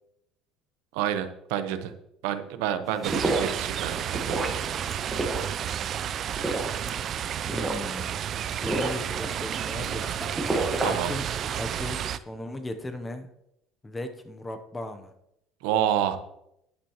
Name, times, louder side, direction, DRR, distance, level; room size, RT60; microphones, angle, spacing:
voice 1, 0.9-1.9 2.2-4.7 10.8-11.1 15.6-16.2, right 10 dB, 90° right, 9 dB, 0.9 m, -29 dB
sound 1, 2.9-11.7, right 2 dB, 10° right, 1.3 m, -32 dB
sound 2, 3.0-12.2, right 9 dB, 35° right, 0.4 m, -31 dB
voice 2, 7.4-8.2 8.6-10.5 10.9-11.3 11.6-13.3 13.8-15.1, left 1 dB, 10° left, 7 dB, 0.7 m, -37 dB
12.0 x 10.0 x 3.0 m, 0.80 s
cardioid pair, 165°, 0 cm